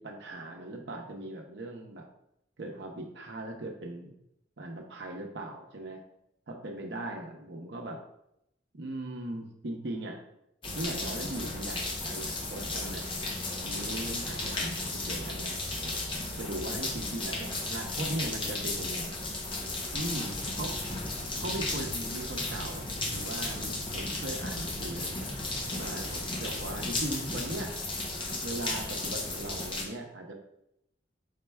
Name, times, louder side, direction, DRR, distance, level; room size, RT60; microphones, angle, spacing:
voice 1, 0.0-2.0 2.6-4.1 4.6-6.0 6.5-8.0 8.7-10.2 10.7-13.1 13.6-15.6 16.4-19.2 19.9-20.8 21.4-25.2 25.8-27.8 28.4-30.3, right 1 dB, 70° right, 2 dB, 0.7 m, -39 dB
sound 1, 10.6-29.8, left 2 dB, 30° left, 0.7 m, -35 dB
sound 2, 19.9-27.6, left 1 dB, 90° left, 1.4 m, -43 dB
5.0 x 4.4 x 2.3 m, 0.79 s
head